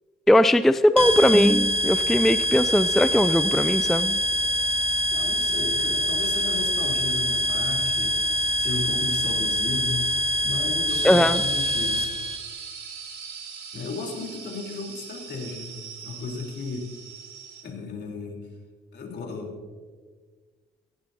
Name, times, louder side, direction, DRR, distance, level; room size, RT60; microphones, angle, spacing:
voice 1, 0.3-4.2 11.0-11.4, left 1 dB, ahead, 13 dB, 0.4 m, -19 dB
sound 1, 1.0-12.4, equal, 30° right, 2.3 m, -25 dB
voice 2, 5.1-8.2 8.6-10.1 10.4-12.2 13.7-16.9 17.6-18.4 18.9-19.5, left 4 dB, 60° left, 1 dB, 3.7 m, -34 dB
sound 2, 10.9-17.6, right 6 dB, 55° right, 3.9 m, -40 dB
18.0 x 16.5 x 2.8 m, 1.5 s
cardioid pair, 90°, 20 cm